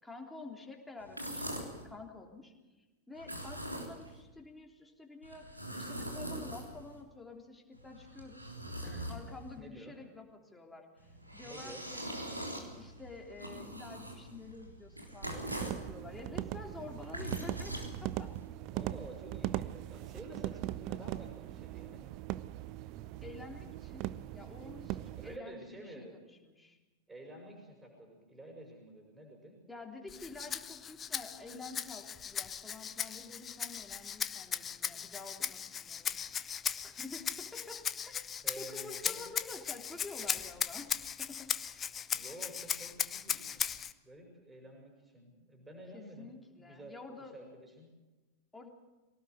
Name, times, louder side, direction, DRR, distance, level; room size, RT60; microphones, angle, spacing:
voice 1, 0.0-2.5 3.1-5.5 5.8-8.5 9.1-12.1 12.7-18.3 23.2-24.1 24.3-26.8 29.7-36.2 36.8-38.1 38.5-40.9 41.2-41.9 45.9-47.4 48.5-48.7, left 3 dB, 10° left, 2 dB, 3.3 m, -49 dB
sound 1, 1.0-1.8 3.1-4.2 5.2-7.0 7.7-9.6 11.0-15.9 16.8-18.5, right 1 dB, 90° right, 3.6 m, -42 dB
voice 2, 8.8-9.1 9.6-10.0 11.4-11.8 18.7-22.0 25.2-26.1 27.1-29.5 38.4-39.2 42.1-47.9, right 1 dB, 10° right, 1 dB, 5.6 m, -50 dB
sound 2, 15.2-25.4, right 15 dB, 40° right, 0.7 m, -40 dB
Rattle (instrument), 30.1-43.9, left 8 dB, 25° left, 0.8 m, -38 dB
23.5 x 18.0 x 8.1 m, 1.1 s
figure-of-eight pair, 90°, 0 cm